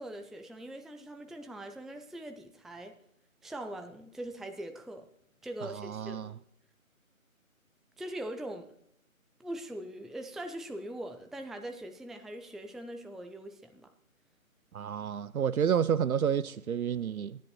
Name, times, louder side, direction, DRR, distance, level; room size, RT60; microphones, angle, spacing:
voice 1, 0.0-3.0 3.4-5.0 5.4-6.2 8.0-8.7 9.4-13.9, right 1 dB, ahead, 0.4 m, -42 dB
voice 2, 5.6-6.3 14.7-17.4, right 8 dB, 80° right, 0.5 m, -30 dB
14.5 x 10.0 x 2.9 m
figure-of-eight pair, 170°, 42 cm